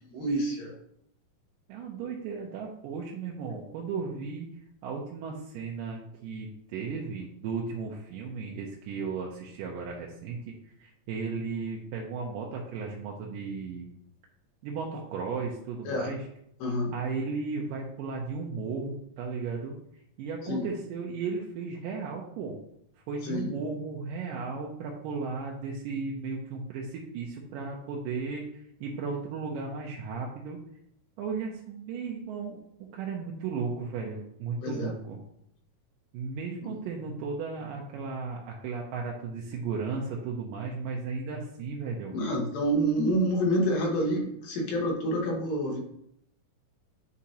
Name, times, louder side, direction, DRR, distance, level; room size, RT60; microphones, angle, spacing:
voice 1, 0.2-0.7 15.8-16.1 16.6-16.9 20.4-20.7 23.2-23.6 34.6-34.9 36.6-36.8 42.1-45.8, equal, 75° left, -1 dB, 3.1 m, -28 dB
voice 2, 1.7-4.5 4.8-13.9 14.6-16.3 16.9-19.8 20.2-22.6 23.1-30.6 31.2-32.6 32.9-35.2 36.1-42.2, right 4 dB, 80° right, -1 dB, 2.3 m, -35 dB
8.4 x 5.0 x 2.9 m, 0.75 s
omnidirectional pair, 4.0 m